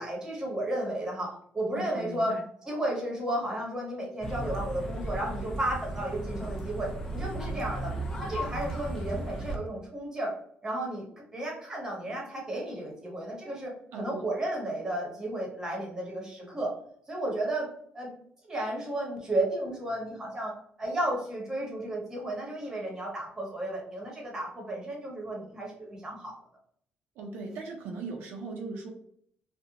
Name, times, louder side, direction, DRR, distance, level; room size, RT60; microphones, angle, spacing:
voice 1, 0.0-2.4 2.6-7.9 8.2-10.3 10.6-11.0 11.3-16.7 17.1-17.7 17.9-18.1 18.5-20.5 20.8-26.3, right 1 dB, 20° right, -2 dB, 0.9 m, -33 dB
voice 2, 1.7-2.4 13.9-14.3 27.2-28.9, right 3 dB, 80° right, 0 dB, 0.5 m, -38 dB
sound 1, 4.2-9.5, right 1 dB, 15° left, 0.5 m, -35 dB
2.5 x 2.1 x 2.8 m, 0.65 s
cardioid pair, 140°, 3 cm